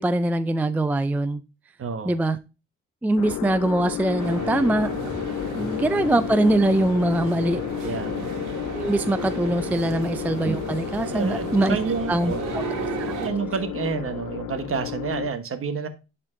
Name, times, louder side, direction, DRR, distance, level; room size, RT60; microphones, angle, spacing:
voice 1, 0.0-1.4 2.1-2.4 3.0-4.9 5.6-7.9 8.7-11.8 12.1-12.6, right 1 dB, 5° right, 11 dB, 0.4 m, -23 dB
voice 2, 1.8-2.1 5.4-5.7 7.8-8.3 11.1-12.5 12.8-15.9, right 5 dB, 45° right, 9 dB, 1.2 m, -30 dB
sound 1, 3.2-15.3, left 12 dB, 80° left, 0.7 m, -32 dB
sound 2, 4.2-13.3, right 5 dB, 80° right, 2.0 m, -34 dB
11.0 x 4.3 x 2.6 m, 0.29 s
cardioid pair, 90°, 30 cm